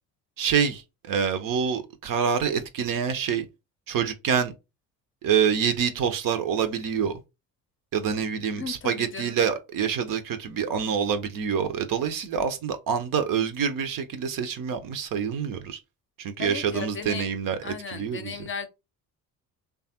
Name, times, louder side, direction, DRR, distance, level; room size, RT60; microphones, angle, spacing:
voice 1, 0.4-3.5 3.9-4.5 5.2-7.1 7.9-15.8 16.2-18.4, right 7 dB, 50° right, 0.7 m, -26 dB
voice 2, 8.5-9.4 16.4-17.3 17.6-18.7, left 6 dB, 30° left, 0.6 m, -36 dB
3.2 x 2.3 x 2.8 m
hypercardioid pair, 50°, 43 cm